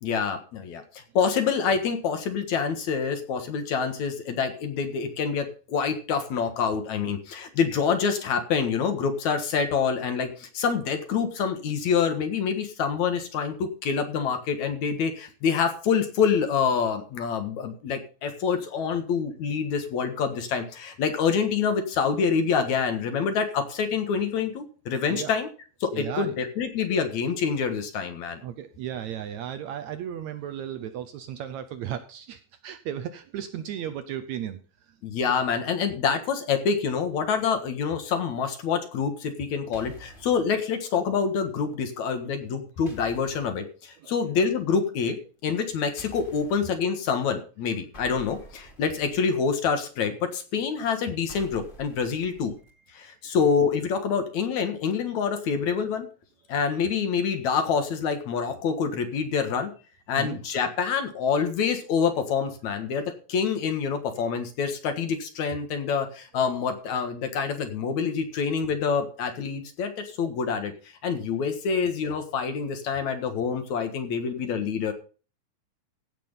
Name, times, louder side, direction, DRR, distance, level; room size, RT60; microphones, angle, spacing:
voice 1, 0.0-25.5 25.8-28.4 35.0-45.2 45.4-52.5 52.9-56.1 56.5-59.7 60.1-70.7 71.0-74.9, left 6 dB, 60° left, 7 dB, 2.6 m, -26 dB
voice 2, 25.9-26.3 28.4-34.6 34.9-35.0 44.0-44.2 60.1-60.4, right 10 dB, 80° right, 9 dB, 1.6 m, -35 dB
sound 1, 39.7-40.4 42.9-43.6 46.0-46.7 47.9-49.4 51.3-52.7, right 1 dB, 20° left, 1.5 m, -48 dB
16.0 x 6.1 x 5.5 m, 0.37 s
omnidirectional pair, 4.2 m